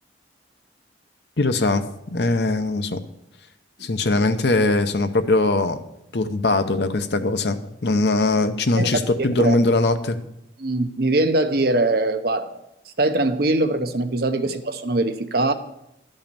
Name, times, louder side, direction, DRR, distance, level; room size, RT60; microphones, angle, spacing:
voice 1, 1.4-1.8 2.1-3.0 3.8-5.8 6.1-10.2, left 2 dB, 65° left, 9 dB, 0.8 m, -21 dB
voice 2, 10.6-12.6 13.0-15.5, right 2 dB, 55° right, 8 dB, 0.8 m, -22 dB
12.0 x 5.6 x 7.0 m, 0.84 s
head